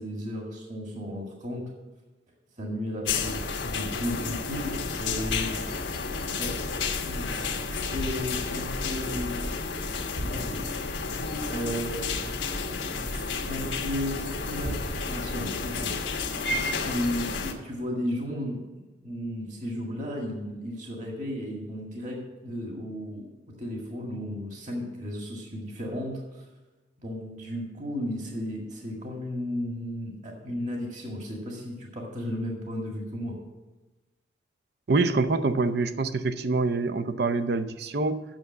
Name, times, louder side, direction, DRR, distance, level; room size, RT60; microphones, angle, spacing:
voice 1, 0.0-1.7 2.6-5.5 6.3-6.5 7.0-9.4 10.2-10.8 11.5-12.1 13.1-16.1 16.5-18.6 19.0-22.2 22.4-23.3 23.6-26.4 27.0-33.3, left 1 dB, 40° right, 0 dB, 1.9 m, -34 dB
sound 1, 3.1-17.5, left 4 dB, 80° left, 1.2 m, -31 dB
voice 2, 34.9-38.2, right 3 dB, 60° right, 11 dB, 0.6 m, -25 dB
8.8 x 6.9 x 7.3 m, 1.1 s
head